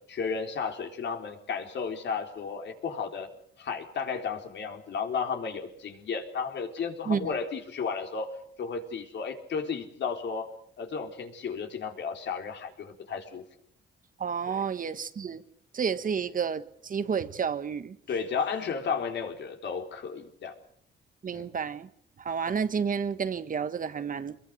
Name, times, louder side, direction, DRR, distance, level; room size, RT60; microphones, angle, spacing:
voice 1, 0.1-3.3 3.6-10.5 10.8-13.4 14.5-14.6 18.1-20.5 21.3-21.4, left 5 dB, 65° left, 4.1 m, -33 dB
voice 2, 7.1-7.4 14.2-15.4 15.7-18.0 21.2-21.9 22.2-24.4, right 6 dB, 45° right, 1.4 m, -30 dB
24.5 x 22.0 x 6.7 m
cardioid pair, 90°, 20 cm